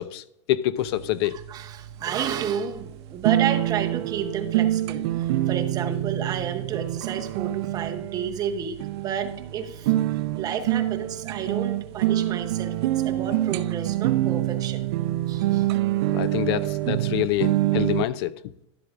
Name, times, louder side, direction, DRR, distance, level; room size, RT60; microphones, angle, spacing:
voice 1, 0.0-1.4 16.1-18.4, left 14 dB, 55° left, 0.4 m, -26 dB
sound 1, 0.8-18.1, right 15 dB, 60° right, 0.4 m, -26 dB
voice 2, 1.3-9.9 10.4-14.9 15.3-15.7, right 8 dB, 25° right, 0.8 m, -31 dB
11.5 x 7.7 x 2.5 m
supercardioid pair, 150°, 15 cm